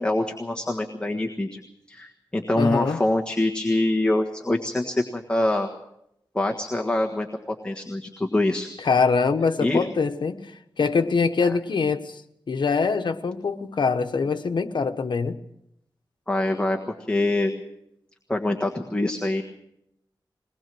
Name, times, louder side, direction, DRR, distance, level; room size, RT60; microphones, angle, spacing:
voice 1, 0.0-1.6 1.9-5.7 6.3-7.3 7.6-8.7 9.6-9.9 16.3-17.6 18.3-19.4, left 1 dB, 10° left, 1 dB, 1.5 m, -24 dB
voice 2, 2.5-3.0 8.8-10.5 10.8-12.2 12.5-15.4, left 4 dB, 65° left, 7 dB, 1.2 m, -23 dB
21.5 x 20.0 x 6.2 m, 0.79 s
wide cardioid pair, 135°, 8 cm